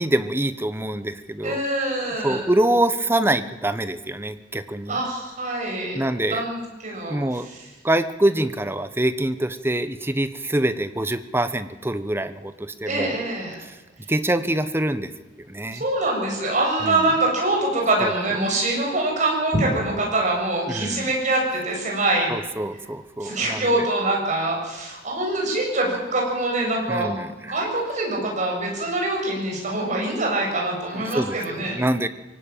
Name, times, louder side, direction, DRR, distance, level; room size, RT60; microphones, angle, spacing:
voice 1, 0.0-1.6 2.2-5.0 5.9-6.4 7.1-7.5 7.8-13.1 13.6-13.7 14.1-15.1 15.5-15.8 16.8-17.1 18.0-18.1 20.7-21.1 22.3-23.9 26.9-27.5 30.9-32.1, right 1 dB, 15° right, 11 dB, 1.1 m, -25 dB
voice 2, 1.4-2.4 4.9-6.0 6.3-7.2 12.9-13.6 15.7-22.4 23.2-27.1 27.4-31.8, right 2 dB, 45° right, -1 dB, 7.7 m, -24 dB
23.5 x 17.5 x 9.1 m, 1.1 s
head